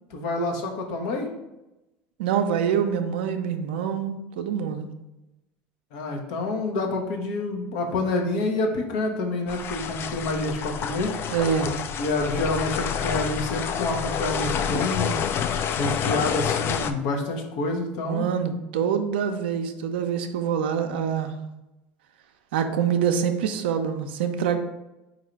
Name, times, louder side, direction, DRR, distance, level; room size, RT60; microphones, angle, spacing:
voice 1, 0.1-1.3 5.9-11.1 12.0-15.2 15.8-18.3, left 2 dB, 75° left, 2 dB, 0.9 m, -28 dB
voice 2, 2.2-4.9 11.3-11.8 18.1-21.3 22.5-24.6, right 7 dB, 85° right, 7 dB, 0.5 m, -25 dB
sound 1, 9.5-16.9, left 8 dB, 45° left, 0.4 m, -28 dB
4.0 x 2.6 x 4.5 m, 0.96 s
supercardioid pair, 90°, 5 cm